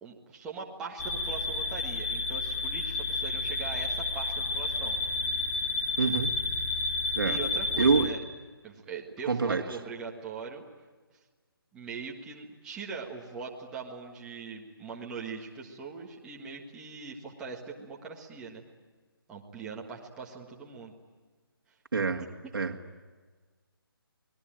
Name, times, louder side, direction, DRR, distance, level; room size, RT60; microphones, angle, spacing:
voice 1, 0.0-5.0 7.2-8.2 8.6-10.6 11.7-18.6 19.3-20.9, right 5 dB, 5° right, -2 dB, 1.7 m, -41 dB
sound 1, 1.0-8.1, left 3 dB, 10° left, 2.3 m, -31 dB
voice 2, 6.0-6.4 7.2-7.4 7.8-8.1 9.2-9.6 21.9-22.3 22.5-22.8, right 5 dB, 65° right, 2 dB, 2.0 m, -26 dB
29.0 x 21.0 x 9.0 m, 1.4 s
hypercardioid pair, 170°, 13 cm